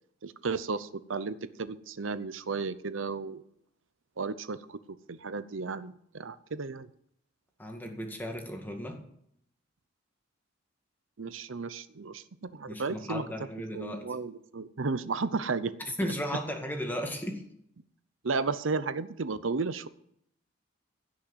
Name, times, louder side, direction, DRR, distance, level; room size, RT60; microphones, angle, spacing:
voice 1, 0.2-3.4 4.2-4.8 5.1-6.9 11.2-13.3 13.7-15.7 18.2-19.9, right 4 dB, 85° right, 14 dB, 0.7 m, -33 dB
voice 2, 7.6-9.0 12.7-14.0 16.0-17.4, equal, 10° left, 3 dB, 2.0 m, -35 dB
16.5 x 6.4 x 8.0 m, 0.72 s
head